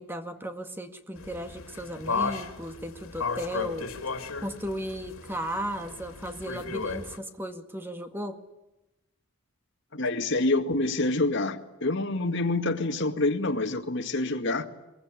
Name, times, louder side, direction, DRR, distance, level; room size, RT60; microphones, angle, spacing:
voice 1, 0.0-3.9 4.4-8.4, equal, 10° right, 1.9 m, -35 dB
sound 1, 1.2-7.2, left 4 dB, 90° left, 3.0 m, -35 dB
voice 2, 9.9-14.7, left 2 dB, 60° left, 2.1 m, -27 dB
23.0 x 21.5 x 9.8 m
head